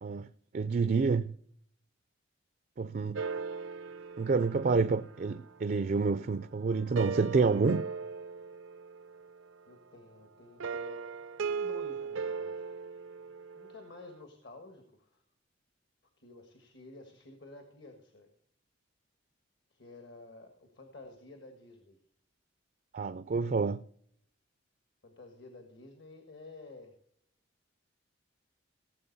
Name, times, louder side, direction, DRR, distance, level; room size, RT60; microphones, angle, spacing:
voice 1, 0.5-1.4 2.8-3.2 4.2-7.9 22.9-23.8, right 4 dB, 45° right, 0.4 m, -28 dB
sound 1, 3.2-6.2 6.7-9.4 10.6-13.9, right 5 dB, 85° right, 0.6 m, -38 dB
voice 2, 9.7-11.0 11.5-12.7 13.5-15.2 16.2-18.3 19.7-22.0 25.0-26.9, left 2 dB, 60° left, 1.6 m, -51 dB
17.5 x 7.3 x 4.1 m
head